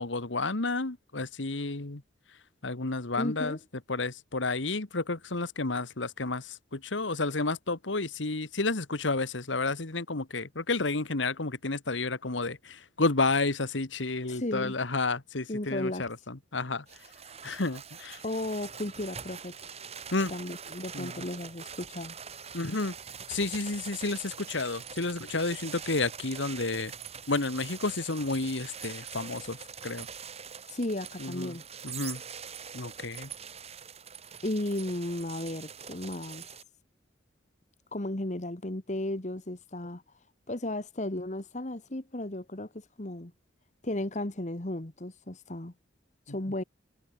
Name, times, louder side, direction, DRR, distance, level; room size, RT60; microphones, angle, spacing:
voice 1, 0.0-2.0 2.6-3.6 3.9-16.8 17.4-18.2 20.1-20.3 20.9-21.2 22.5-22.9 23.3-26.9 27.3-29.6 29.8-30.1 31.2-31.6 31.8-32.2 32.7-33.3, left 3 dB, 80° left, 1.7 m, -31 dB
voice 2, 3.2-3.6 14.3-14.8 15.5-16.1 18.2-19.5 20.3-22.1 30.7-31.6 34.4-36.4 37.9-40.0 40.5-43.3 43.8-45.7 46.3-46.6, left 1 dB, 40° left, 1.5 m, -34 dB
sound 1, 16.9-36.6, right 7 dB, 35° right, 4.7 m, -44 dB
head